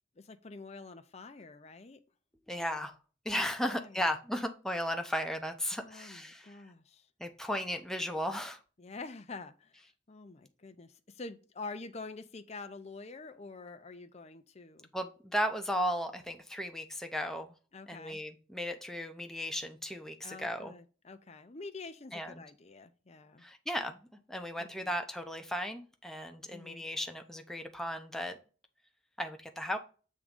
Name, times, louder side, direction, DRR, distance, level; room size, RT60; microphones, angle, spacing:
voice 1, 0.2-2.0 3.7-4.1 5.8-7.1 8.8-9.8 10.1-14.9 17.7-18.2 20.2-23.4 24.6-25.0 26.5-26.8, left 3 dB, 35° left, 0.7 m, -47 dB
voice 2, 2.5-2.9 3.2-6.6 7.2-8.6 14.9-17.5 17.9-20.7 22.1-22.4 23.4-28.3 29.2-29.8, equal, 5° left, 0.8 m, -35 dB
7.5 x 3.8 x 5.2 m
head